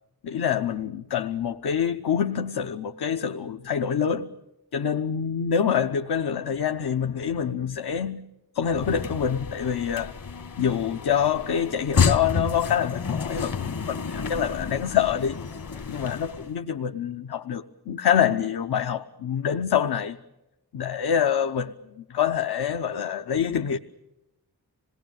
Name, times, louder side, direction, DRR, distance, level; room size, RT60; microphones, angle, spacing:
voice 1, 0.2-4.3 4.7-8.2 8.5-10.1 10.6-15.4 15.9-20.2 20.7-23.8, left 8 dB, 85° left, 0.9 m, -26 dB
sound 1, 8.7-16.5, left 6 dB, 60° left, 1.4 m, -30 dB
27.0 x 19.0 x 9.1 m
wide cardioid pair, 75°, 38 cm